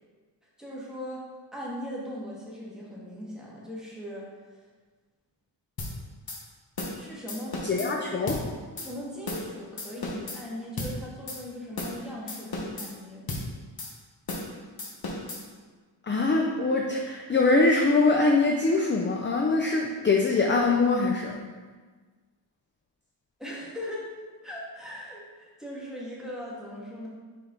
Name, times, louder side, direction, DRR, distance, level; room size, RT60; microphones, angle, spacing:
voice 1, 0.6-1.3 1.5-4.2 7.0-8.0 8.8-13.2 23.4-24.1 24.4-27.1, equal, ahead, -6 dB, 1.8 m, -39 dB
sound 1, 5.8-5.9 6.3-6.4 6.8-7.0 7.3-7.9 8.3-8.4 8.8-8.9 9.3-9.5 9.8-10.4 10.8-10.9 11.3-11.4 11.8-12.0 12.3-12.9 13.3-13.5 13.8-13.9 14.3-14.5 14.8-15.4, left 2 dB, 50° left, 1.1 m, -34 dB
voice 2, 7.6-8.4 16.0-21.4, left 3 dB, 25° left, 1 dB, 0.5 m, -23 dB
5.3 x 4.6 x 3.8 m, 1.4 s
wide cardioid pair, 75°, 45 cm